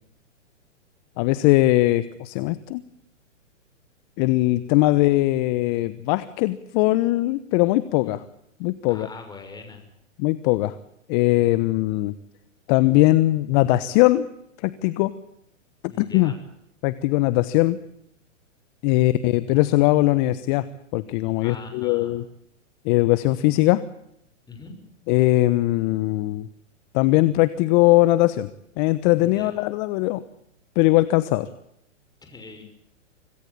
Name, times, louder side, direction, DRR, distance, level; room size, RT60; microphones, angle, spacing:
voice 1, 1.2-2.8 4.2-8.2 8.6-9.1 10.2-10.7 11.1-12.1 12.7-14.3 14.6-15.1 16.0-16.3 16.8-17.8 18.8-20.6 20.9-22.2 22.8-23.8 25.1-26.5 26.9-28.5 28.8-30.2 30.7-31.5, left 18 dB, 35° left, 15 dB, 1.2 m, -20 dB
voice 2, 8.9-9.8 15.9-16.4 21.4-22.2 24.5-24.8 29.2-29.6 32.2-32.6, left 4 dB, 10° left, 5 dB, 6.3 m, -42 dB
26.0 x 18.5 x 8.5 m, 0.78 s
hypercardioid pair, 125°, 38 cm